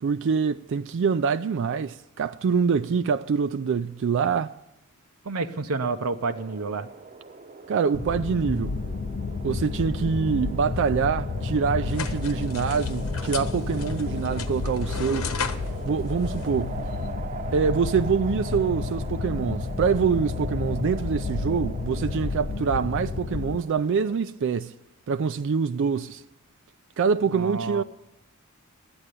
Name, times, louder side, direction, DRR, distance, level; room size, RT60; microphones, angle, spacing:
voice 1, 0.0-4.5 7.7-8.7 9.4-15.3 15.8-16.8 17.5-24.7 25.1-26.2 27.0-27.8, right 6 dB, 60° right, 0.4 m, -25 dB
voice 2, 5.2-6.9 27.3-27.8, right 3 dB, 90° right, 0.7 m, -29 dB
sound 1, 6.2-24.2, right 4 dB, 35° right, 0.8 m, -41 dB
sound 2, 7.9-23.6, left 4 dB, 40° left, 0.4 m, -31 dB
sound 3, 11.9-17.1, left 6 dB, 75° left, 1.1 m, -37 dB
12.5 x 8.8 x 8.2 m
head